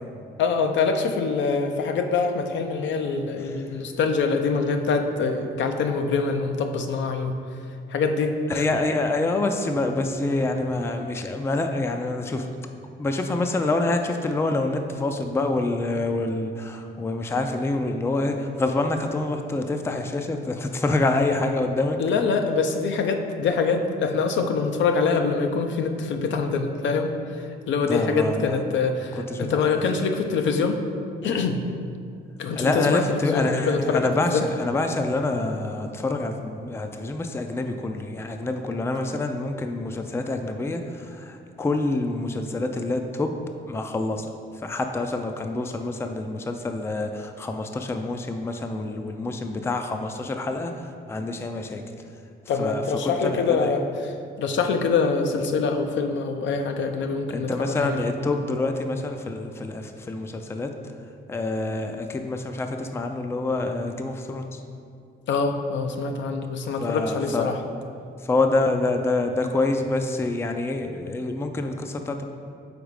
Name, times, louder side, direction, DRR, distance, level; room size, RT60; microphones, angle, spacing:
voice 1, 0.4-7.4 7.9-8.7 22.0-30.8 31.2-31.6 32.4-34.4 52.5-53.8 54.4-58.0 65.3-67.6, left 4 dB, 70° left, 5 dB, 0.5 m, -24 dB
voice 2, 8.5-12.5 13.0-22.0 27.9-28.6 29.3-29.8 32.6-43.3 43.7-44.3 44.6-51.8 52.6-53.7 57.3-60.7 61.3-64.6 66.8-67.5 68.3-72.3, left 2 dB, 15° left, 5 dB, 0.4 m, -26 dB
5.0 x 4.0 x 4.8 m, 2.3 s
cardioid pair, 90°, 20 cm